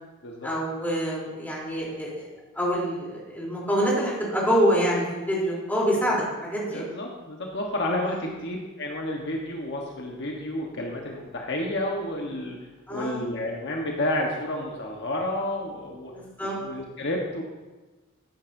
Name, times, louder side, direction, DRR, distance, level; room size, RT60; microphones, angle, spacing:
voice 1, 0.4-2.3 2.5-6.8 8.0-8.2 12.9-13.2 16.1-16.6, equal, 10° left, -5 dB, 3.4 m, -26 dB
voice 2, 6.7-16.1 16.6-17.4, left 1 dB, 55° left, 0 dB, 1.2 m, -30 dB
13.0 x 10.5 x 2.7 m, 1.2 s
head